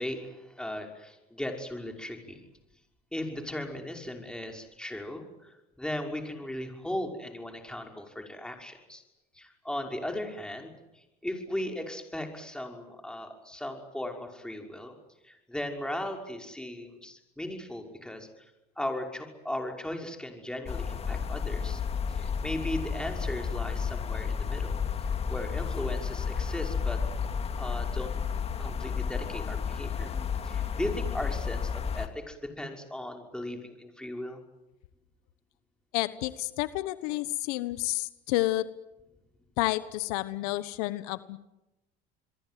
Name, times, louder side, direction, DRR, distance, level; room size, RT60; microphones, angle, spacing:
voice 1, 0.0-2.4 3.1-5.5 5.8-9.0 9.4-10.7 11.2-14.9 15.2-18.3 18.8-21.8 22.1-24.8 25.0-27.0 27.6-28.1 28.6-30.1 30.4-34.4, left 1 dB, 5° left, 3 dB, 5.7 m, -37 dB
sound 1, 20.7-32.1, left 6 dB, 35° left, 2.2 m, -32 dB
voice 2, 35.9-38.6 39.6-41.4, left 18 dB, 85° left, 14 dB, 1.3 m, -30 dB
27.0 x 22.5 x 9.4 m, 0.96 s
supercardioid pair, 105°, 19 cm